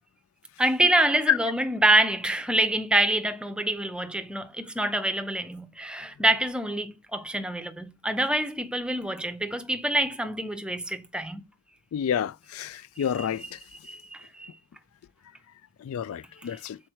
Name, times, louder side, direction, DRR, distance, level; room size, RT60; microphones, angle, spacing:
voice 1, 0.6-11.4 13.2-14.5 16.4-16.6, right 1 dB, 5° right, 0.6 m, -26 dB
voice 2, 11.9-13.4 15.9-16.8, left 9 dB, 75° left, 0.3 m, -28 dB
6.3 x 4.4 x 4.4 m
head